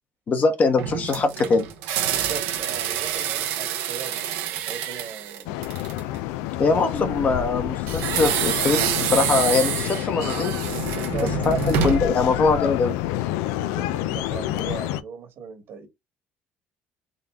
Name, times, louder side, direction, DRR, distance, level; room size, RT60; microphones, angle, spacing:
voice 1, 0.3-1.7 6.6-10.6 11.5-12.9, left 4 dB, 40° left, 1.1 m, -22 dB
sound 1, 0.8-6.1 7.9-12.2, right 8 dB, 85° right, 0.9 m, -27 dB
voice 2, 2.1-4.3 4.6-5.6 6.7-7.0 10.9-11.3 13.6-15.9, right 6 dB, 65° right, 1.7 m, -38 dB
sound 2, 5.5-15.0, left 14 dB, 90° left, 0.4 m, -28 dB
3.9 x 2.8 x 3.5 m
supercardioid pair, 95°, 4 cm